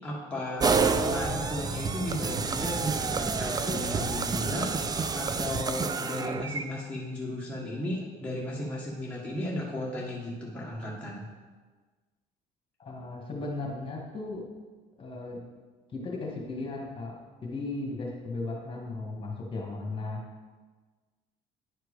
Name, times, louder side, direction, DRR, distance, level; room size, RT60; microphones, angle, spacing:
voice 1, 0.0-11.3, left 1 dB, 5° left, -6 dB, 1.5 m, -35 dB
sound 1, 0.6-6.6, right 4 dB, 25° right, 0.4 m, -29 dB
voice 2, 12.8-14.4 15.0-15.4 15.9-17.2 17.4-20.2, left 2 dB, 30° left, -1 dB, 2.0 m, -36 dB
9.7 x 4.6 x 5.0 m, 1.4 s
cardioid pair, 110°, 17 cm